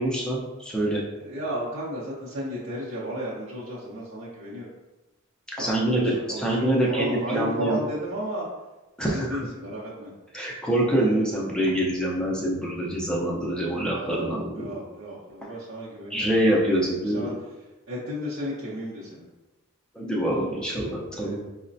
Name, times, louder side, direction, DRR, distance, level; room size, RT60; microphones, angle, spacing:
voice 1, 0.0-1.0 5.6-7.8 9.0-9.4 10.3-14.8 16.1-17.4 19.9-21.4, right 1 dB, 5° left, -4 dB, 0.5 m, -25 dB
voice 2, 1.2-4.7 5.6-8.5 9.0-10.1 13.8-16.3 16.6-17.3 17.9-19.3 21.2-21.5, equal, 65° right, -9 dB, 0.7 m, -34 dB
4.8 x 2.1 x 2.6 m, 1.1 s
head